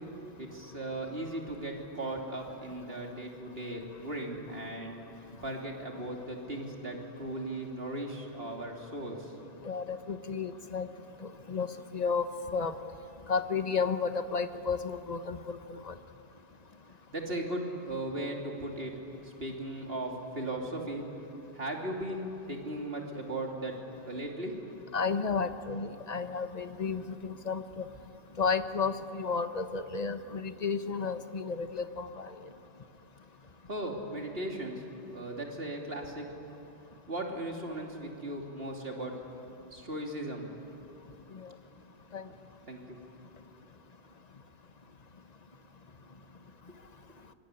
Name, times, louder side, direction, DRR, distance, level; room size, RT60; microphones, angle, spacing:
voice 1, 0.4-5.0 5.4-9.3 17.1-18.9 19.2-21.0 21.5-23.7 24.0-24.5 33.7-34.8 35.1-36.3 37.1-39.1 39.7-40.5 42.2-42.3 42.7-43.0, right 1 dB, 55° right, 0 dB, 3.4 m, -37 dB
voice 2, 9.6-10.9 11.5-11.7 11.9-12.3 12.5-12.7 13.3-15.9 24.9-27.8 28.4-32.3 42.1-42.2, left 5 dB, 35° left, 9 dB, 1.1 m, -32 dB
25.5 x 23.0 x 9.9 m, 2.8 s
omnidirectional pair, 1.2 m